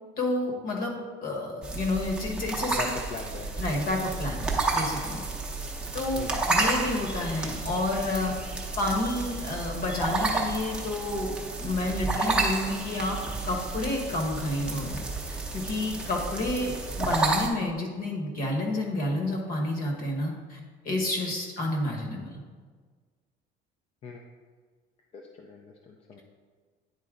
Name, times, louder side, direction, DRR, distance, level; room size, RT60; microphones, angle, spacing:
voice 1, 0.2-2.9 3.6-5.2 5.9-8.3 8.8-13.2 13.4-22.4, left 2 dB, 50° left, 1 dB, 1.3 m, -30 dB
sound 1, 1.6-17.5, right 3 dB, 5° right, 0.7 m, -31 dB
voice 2, 2.7-3.6 6.1-6.7 24.0-24.2 25.1-26.2, left 3 dB, 30° left, 2 dB, 0.4 m, -40 dB
9.5 x 4.2 x 3.7 m, 1.5 s
cardioid pair, 175°, 19 cm